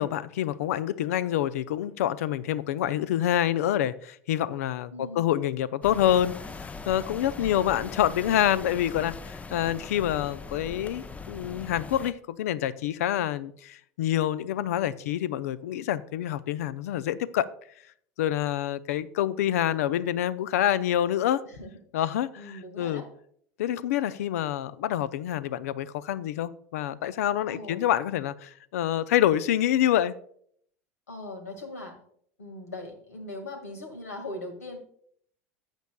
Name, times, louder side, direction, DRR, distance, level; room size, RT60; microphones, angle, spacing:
voice 1, 0.0-17.5 18.2-21.4 21.9-23.0 23.6-30.1, left 11 dB, 75° left, 0.5 m, -27 dB
voice 2, 4.9-5.2 7.4-7.6 21.4-22.1 22.4-23.1 27.4-27.8 31.1-32.0 32.4-34.8, left 2 dB, 90° left, 1.8 m, -40 dB
sound 1, 5.8-12.1, left 4 dB, 15° left, 0.5 m, -40 dB
14.0 x 8.2 x 2.2 m
hypercardioid pair, 80°, 8 cm